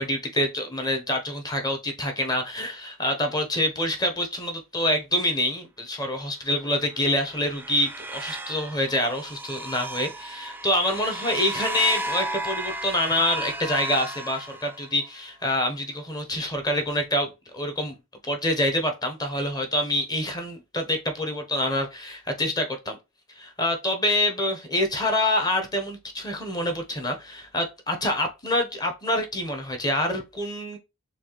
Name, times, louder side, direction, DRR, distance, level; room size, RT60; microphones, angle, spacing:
voice 1, 0.0-18.0 18.3-23.0 23.4-30.8, left 1 dB, 20° left, 0.8 m, -26 dB
sound 1, 6.8-15.1, right 1 dB, 10° right, 0.3 m, -34 dB
6.2 x 2.4 x 3.0 m
head